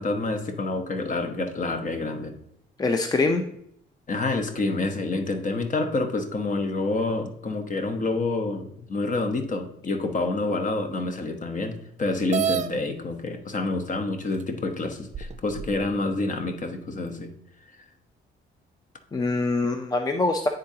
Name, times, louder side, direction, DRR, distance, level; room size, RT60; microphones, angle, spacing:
voice 1, 0.0-2.3 4.1-17.3, left 2 dB, 40° left, 6 dB, 1.0 m, -28 dB
voice 2, 2.8-3.4 19.1-20.5, left 3 dB, 20° left, 5 dB, 0.5 m, -24 dB
sound 1, 12.3-12.7 13.7-13.8 14.4-14.5 15.1-15.8, right 8 dB, 40° right, 0.4 m, -28 dB
9.8 x 3.8 x 2.8 m, 0.72 s
cardioid pair, 90°, 20 cm